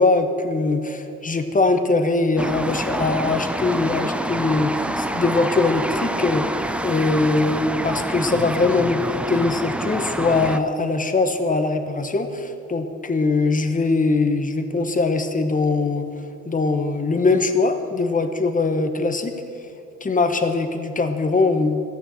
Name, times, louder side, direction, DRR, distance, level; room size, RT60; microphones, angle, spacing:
voice 1, 0.0-6.4 6.8-16.1 16.4-19.3 20.0-21.8, left 3 dB, 25° left, 7 dB, 1.2 m, -21 dB
sound 1, 2.4-10.6, right 1 dB, 5° right, 0.5 m, -27 dB
13.5 x 9.2 x 7.8 m, 2.7 s
cardioid pair, 90°, 30 cm